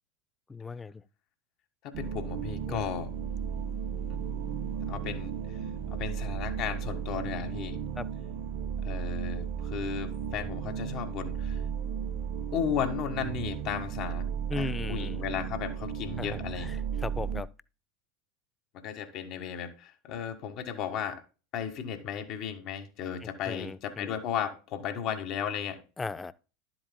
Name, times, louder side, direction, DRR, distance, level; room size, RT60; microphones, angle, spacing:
voice 1, 0.5-1.0 2.7-2.9 8.0-8.1 14.5-15.2 16.2-17.5 23.2-24.2 26.0-26.3, left 3 dB, 15° left, 0.5 m, -38 dB
sound 1, 1.9-17.4, right 7 dB, 55° right, 0.7 m, -35 dB
voice 2, 2.0-3.1 4.9-5.3 5.9-7.8 8.8-11.6 12.5-14.3 14.6-16.7 18.8-21.2 21.5-25.8, left 8 dB, 45° left, 1.7 m, -35 dB
sound 2, 2.9-9.5, right 3 dB, 75° right, 2.0 m, -47 dB
12.0 x 7.8 x 2.2 m
figure-of-eight pair, 80°, 0 cm